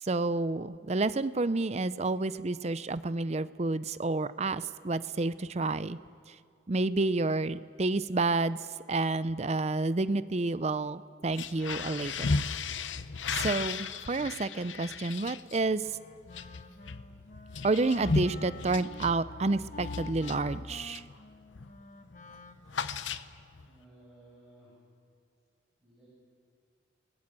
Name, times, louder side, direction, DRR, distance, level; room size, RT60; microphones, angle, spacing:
voice 1, 0.0-6.0 6.7-8.6 8.9-12.3 13.3-15.8 17.6-21.0, right 3 dB, 35° right, 14 dB, 0.5 m, -29 dB
sound 1, 11.2-21.2 21.5-21.8 22.1-23.7, left 4 dB, 75° left, 0.8 m, -36 dB
Wind instrument woodwind instrument, 15.8-23.1, left 3 dB, 40° left, 1.2 m, -48 dB
voice 2, 23.6-24.7 25.8-26.2, right 1 dB, 5° right, -8 dB, 7.2 m, -58 dB
27.5 x 19.0 x 7.5 m, 2.3 s
head